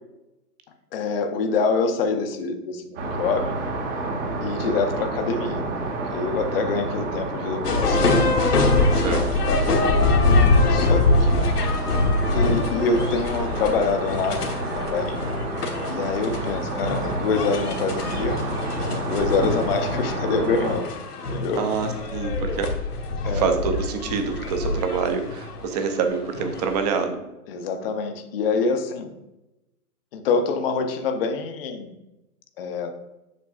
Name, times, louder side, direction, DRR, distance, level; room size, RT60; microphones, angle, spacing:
voice 1, 0.9-3.5 4.4-5.7 6.1-8.3 8.7-8.9 9.2-9.6 10.7-11.4 12.3-15.2 15.9-18.4 18.8-20.8 21.3-21.6 23.2-23.5 27.5-29.1 30.1-31.9 32.6-32.9, left 4 dB, 40° left, 6 dB, 0.6 m, -26 dB
sound 1, 3.0-20.8, right 2 dB, 50° right, 1.5 m, -30 dB
sound 2, 7.6-27.0, left 2 dB, 80° left, 1.3 m, -24 dB
voice 2, 21.6-22.7 23.3-27.2, right 5 dB, 25° right, 6 dB, 0.6 m, -26 dB
7.3 x 5.2 x 2.4 m, 0.96 s
figure-of-eight pair, 125°, 47 cm